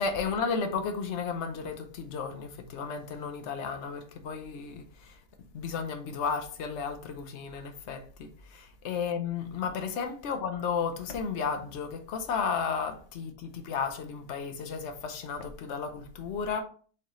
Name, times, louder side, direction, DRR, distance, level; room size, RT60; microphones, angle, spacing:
voice 1, 0.0-5.2 5.5-16.6, left 5 dB, 70° left, 0.6 m, -33 dB
4.6 x 3.1 x 3.6 m
omnidirectional pair, 1.9 m